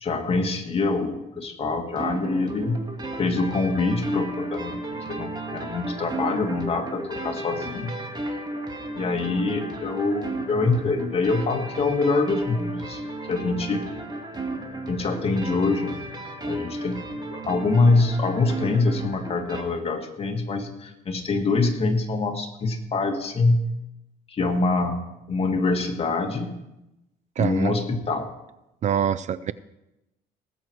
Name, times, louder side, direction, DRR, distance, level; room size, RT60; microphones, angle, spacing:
voice 1, 0.0-2.8 3.2-7.9 8.3-8.4 9.0-13.0 13.3-13.8 14.9-17.1 17.3-23.6 24.3-26.6 27.4-28.3, left 3 dB, 35° left, 3 dB, 2.0 m, -25 dB
sound 1, 1.9-19.6, right 2 dB, 25° right, 2.0 m, -34 dB
voice 2, 27.4-27.7 28.8-29.5, right 9 dB, 45° right, 17 dB, 0.4 m, -24 dB
18.5 x 7.7 x 4.7 m, 0.91 s
cardioid pair, 110°, 17 cm